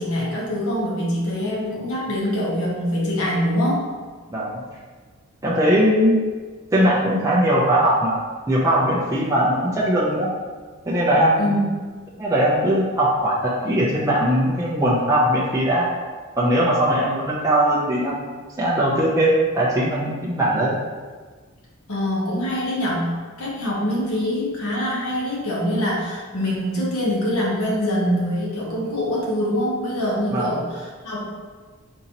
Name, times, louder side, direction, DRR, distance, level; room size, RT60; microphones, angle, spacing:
voice 1, 0.0-3.9 11.4-11.6 21.9-31.2, equal, 80° left, -4 dB, 1.0 m, -24 dB
voice 2, 4.3-4.6 5.4-6.2 6.7-8.2 8.5-10.3 10.9-11.5 12.2-15.9 16.4-18.3 18.6-20.7 30.3-30.5, right 1 dB, 15° right, -6 dB, 0.4 m, -20 dB
3.8 x 2.7 x 2.9 m, 1.4 s
head